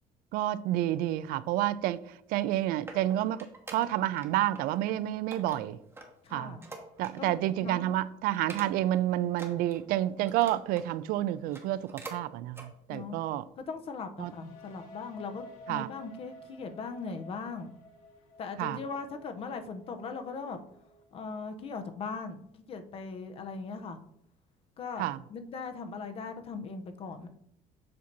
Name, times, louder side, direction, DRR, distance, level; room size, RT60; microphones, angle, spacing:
voice 1, 0.3-2.0 2.3-3.5 3.7-5.8 6.3-6.6 7.0-13.4 14.2-14.3 15.7-15.9 18.6-18.8 25.0-25.2, right 13 dB, 80° right, 0.4 m, -29 dB
sound 1, 2.5-4.3 4.5-4.9 5.3-7.5 7.8-7.9 8.3-9.0 9.3-10.9 11.4-12.2 12.5-12.7 13.2-13.3, right 2 dB, 15° right, 1.0 m, -47 dB
voice 2, 6.2-6.7 7.2-7.9 12.9-13.2 13.6-17.7 18.4-20.6 21.1-24.0 24.8-27.3, left 4 dB, 40° left, 0.7 m, -39 dB
sound 2, 14.2-21.9, left 2 dB, 60° left, 1.7 m, -53 dB
7.5 x 2.7 x 5.8 m
cardioid pair, 150°, 15 cm